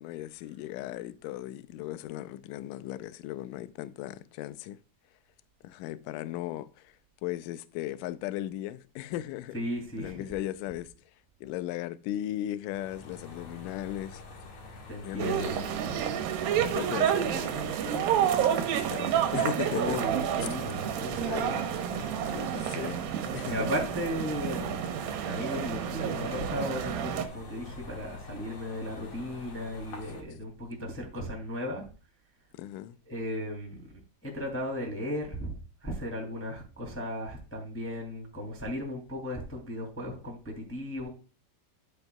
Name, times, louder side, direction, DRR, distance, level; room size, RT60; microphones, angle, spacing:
voice 1, 0.0-4.8 5.6-7.0 7.2-9.6 10.0-10.9 11.4-14.2 15.0-15.7 16.6-20.0 20.4-20.5 20.8-21.7 22.3-23.0 23.3-23.7 32.5-33.0, left 13 dB, 85° left, 1.9 m, -37 dB
voice 2, 9.5-10.3 14.9-15.6 19.6-21.6 23.4-24.8 25.2-31.8 33.1-33.8 34.2-41.1, equal, 5° left, 1.9 m, -35 dB
sound 1, 12.7-30.2, left 3 dB, 50° left, 2.4 m, -46 dB
sound 2, 15.2-27.3, right 9 dB, 75° right, 2.6 m, -30 dB
10.5 x 8.0 x 2.3 m
omnidirectional pair, 4.4 m